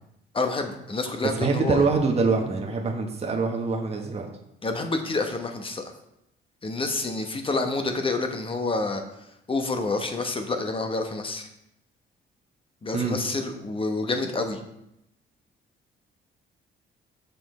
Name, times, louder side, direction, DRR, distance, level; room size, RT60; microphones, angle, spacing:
voice 1, 0.3-1.8 4.6-5.8 6.6-9.0 9.5-11.5 12.8-14.6, left 3 dB, 25° left, 5 dB, 1.1 m, -28 dB
voice 2, 1.3-4.3 12.9-13.2, right 4 dB, 30° right, 1 dB, 1.1 m, -24 dB
7.0 x 6.0 x 4.3 m, 0.82 s
cardioid pair, 90°, 20 cm